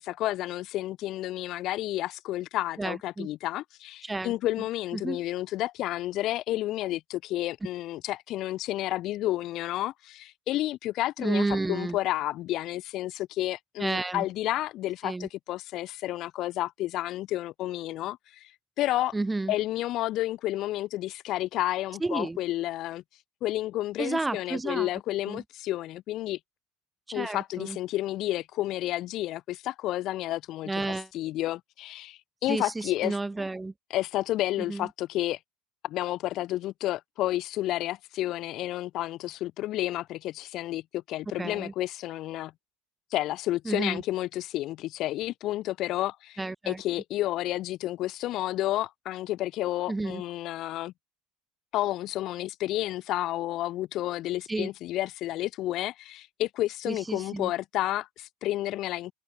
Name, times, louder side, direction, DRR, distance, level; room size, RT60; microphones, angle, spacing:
voice 1, 0.0-18.5 18.8-19.1 19.5-23.0 23.4-26.4 27.1-30.7 31.1-33.2 33.9-35.4 35.8-42.5 43.1-50.9 51.7-59.1, left 15 dB, 55° left, 3.2 m, -31 dB
voice 2, 2.8-3.3 4.0-4.3 4.9-5.2 11.2-12.0 13.8-14.3 15.0-15.3 19.1-19.5 22.0-22.4 24.0-24.9 25.3-25.4 27.1-27.8 30.7-31.1 32.5-33.7 34.7-34.9 41.4-41.7 43.6-44.0 46.4-46.8 49.9-50.2 54.5-54.7 56.9-57.5, right 2 dB, 10° right, 3.0 m, -31 dB
hypercardioid pair, 95°, 0 cm